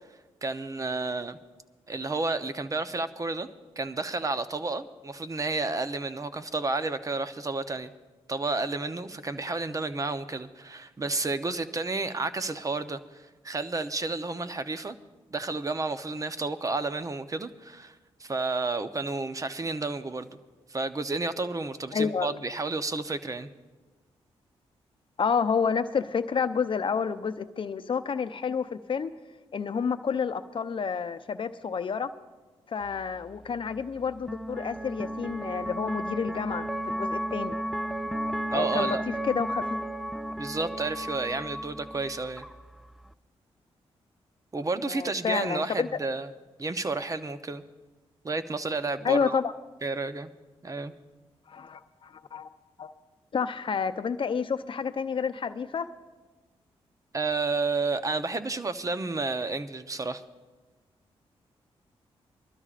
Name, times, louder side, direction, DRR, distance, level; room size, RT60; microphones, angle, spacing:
voice 1, 0.4-1.4 1.9-3.5 3.8-7.9 8.3-15.0 15.3-20.3 20.7-23.5 38.5-39.0 40.4-42.4 44.5-46.3 46.6-47.6 48.2-49.4 49.8-50.3 50.6-50.9 57.1-60.2, right 3 dB, 30° right, 11 dB, 0.8 m, -31 dB
voice 2, 21.9-22.3 25.2-29.1 29.5-32.1 32.7-37.6 38.5-39.0 39.2-39.9 44.9-45.9 49.0-49.5 51.5-52.5 52.8-52.9 53.3-55.9, left 6 dB, 50° left, 10 dB, 0.7 m, -29 dB
sound 1, 32.8-43.1, right 1 dB, ahead, 0.4 m, -34 dB
23.5 x 12.5 x 2.5 m, 1.3 s
cardioid pair, 60°, 11 cm